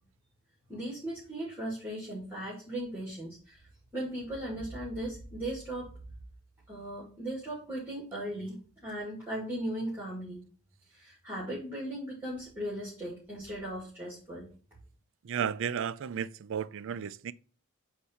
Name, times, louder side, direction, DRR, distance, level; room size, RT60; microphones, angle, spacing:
voice 1, 0.7-3.7 3.9-5.9 6.7-8.6 8.8-10.4 10.9-14.5, right 1 dB, 10° right, 2.1 m, -37 dB
voice 2, 15.3-17.3, right 8 dB, 60° right, 0.4 m, -33 dB
8.2 x 2.8 x 5.7 m
head